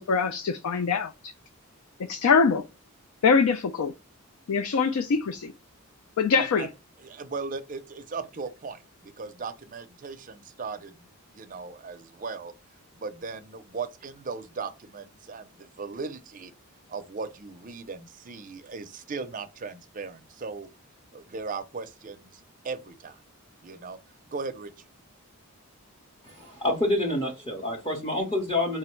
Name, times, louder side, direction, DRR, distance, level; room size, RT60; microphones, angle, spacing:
voice 1, 0.0-1.3 2.1-2.6 3.2-3.9 4.5-5.5 6.2-6.7, left 5 dB, 75° left, 0.4 m, -23 dB
voice 2, 6.4-6.7 7.0-12.5 13.0-16.5 16.9-20.7 21.1-23.2 23.6-24.0 24.3-24.7, right 4 dB, 35° right, 0.5 m, -38 dB
voice 3, 26.2-28.8, left 1 dB, 20° left, 0.8 m, -27 dB
4.6 x 2.1 x 4.4 m
head